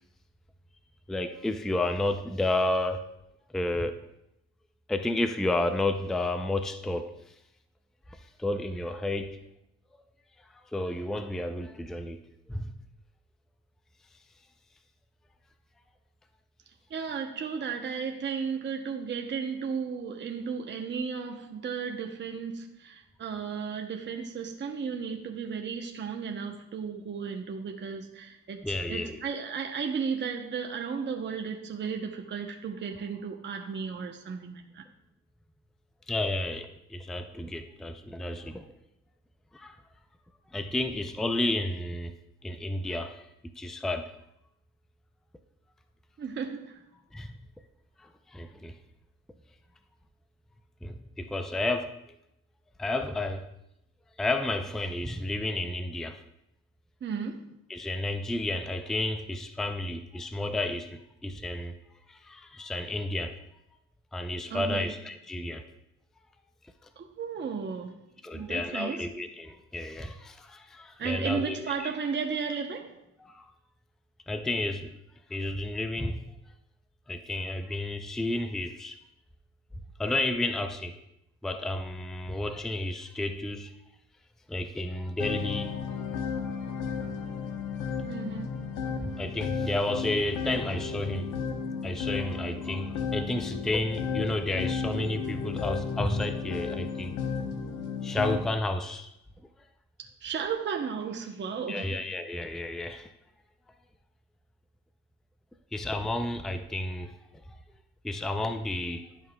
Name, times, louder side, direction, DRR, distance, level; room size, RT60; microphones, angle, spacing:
voice 1, 1.1-3.0 3.5-3.9 4.9-7.1 8.2-9.4 10.5-12.2 12.5-12.7 28.6-29.2 36.1-38.7 39.5-39.8 40.5-42.1 42.4-43.3 43.6-44.1 47.1-47.3 48.0-48.7 50.8-51.9 52.8-53.5 54.2-56.2 57.7-61.7 62.1-63.4 64.1-65.6 68.2-71.9 73.2-73.5 74.3-74.9 75.3-76.2 77.1-79.0 80.0-80.9 81.4-83.7 84.5-85.8 89.0-91.3 91.8-97.1 98.0-99.1 101.7-103.1 105.7-107.1 108.0-109.1, left 2 dB, ahead, 0.4 m, -31 dB
voice 2, 16.9-34.9 46.2-46.8 57.0-57.4 64.5-64.9 67.0-68.0 68.3-69.0 71.0-73.0 88.1-88.6 100.0-102.0, right 6 dB, 35° right, 0.8 m, -34 dB
sound 1, 85.2-98.4, left 6 dB, 90° left, 1.0 m, -33 dB
11.0 x 5.5 x 2.3 m
cardioid pair, 90°, 30 cm